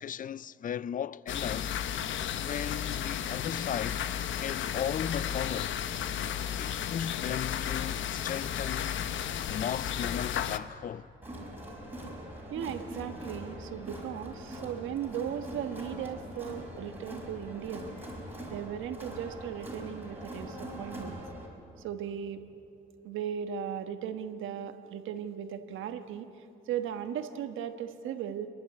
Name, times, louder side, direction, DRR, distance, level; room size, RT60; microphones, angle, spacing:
voice 1, 0.0-1.7 2.3-4.0 4.4-5.8 6.6-9.0 9.5-11.1, left 9 dB, 45° left, 0.4 m, -36 dB
sound 1, 1.3-10.6, left 9 dB, 70° left, 0.9 m, -33 dB
Crowd, 11.2-21.5, right 1 dB, 10° right, 5.5 m, -42 dB
voice 2, 12.5-17.9 18.5-21.2 21.8-22.4 23.0-26.3 26.7-28.5, right 9 dB, 85° right, 1.3 m, -37 dB
30.0 x 11.5 x 8.4 m
cardioid pair, 90°, 20 cm